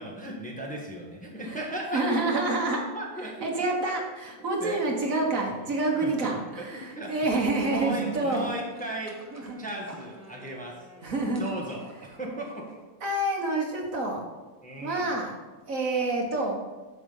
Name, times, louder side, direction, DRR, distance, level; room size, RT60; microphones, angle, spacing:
voice 1, 0.0-3.5 4.6-4.8 6.0-6.1 6.6-7.4 7.7-9.2 9.6-10.9 11.4-12.8 14.6-15.1, right 1 dB, 5° left, -2 dB, 1.3 m, -36 dB
voice 2, 1.9-2.8 3.4-8.5 9.3-9.6 11.0-11.5 13.0-14.2 14.8-15.3 15.7-16.6, right 2 dB, 60° right, 0 dB, 1.8 m, -27 dB
Wind instrument woodwind instrument, 5.0-11.9, right 1 dB, 25° left, 2.8 m, -51 dB
sound 1, 7.5-12.8, right 1 dB, 15° right, 0.9 m, -51 dB
8.4 x 6.6 x 5.5 m, 1.2 s
omnidirectional pair, 1.6 m